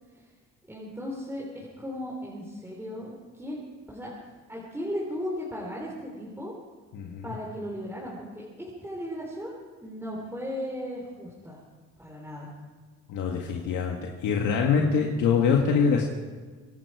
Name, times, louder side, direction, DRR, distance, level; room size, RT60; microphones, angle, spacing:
voice 1, 0.7-3.6 3.9-4.1 4.5-6.5 7.2-11.6 12.0-12.5, equal, 5° right, -4 dB, 3.6 m, -36 dB
voice 2, 6.9-7.3 13.1-16.0, left 6 dB, 85° left, 0 dB, 1.7 m, -24 dB
25.0 x 11.0 x 4.8 m, 1.4 s
cardioid pair, 90°, 30 cm